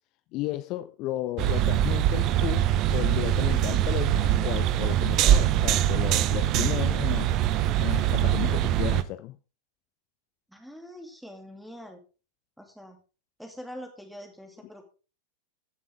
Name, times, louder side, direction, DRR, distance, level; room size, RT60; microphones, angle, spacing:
voice 1, 0.3-7.4 7.8-9.4, left 16 dB, 40° left, 0.6 m, -33 dB
sound 1, 1.4-9.0, right 12 dB, 35° right, 0.6 m, -23 dB
voice 2, 10.5-12.0 12.6-13.0 13.4-14.8, equal, ahead, 2.4 m, -44 dB
14.5 x 7.1 x 3.6 m
figure-of-eight pair, 90°, 0 cm